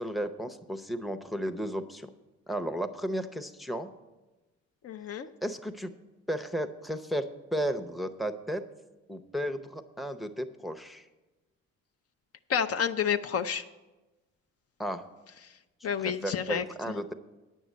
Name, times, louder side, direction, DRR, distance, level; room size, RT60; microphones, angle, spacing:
voice 1, 0.0-2.1 2.5-3.9 5.4-5.9 6.3-8.6 9.1-11.0 14.8-15.0 16.0-17.1, equal, ahead, 8 dB, 0.6 m, -34 dB
voice 2, 4.8-5.3 12.5-13.7 15.8-16.6, left 7 dB, 50° left, 9 dB, 0.6 m, -29 dB
9.4 x 6.3 x 8.1 m, 1.1 s
cardioid pair, 90°, 30 cm